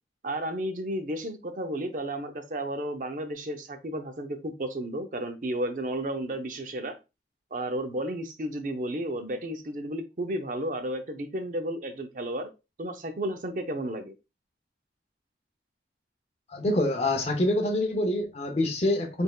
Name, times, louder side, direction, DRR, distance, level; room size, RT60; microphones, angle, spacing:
voice 1, 0.2-7.0 7.5-12.5 12.8-14.1, right 1 dB, 45° right, 0.6 m, -32 dB
voice 2, 16.5-19.2, left 1 dB, 35° left, 0.6 m, -26 dB
4.2 x 3.4 x 2.3 m
head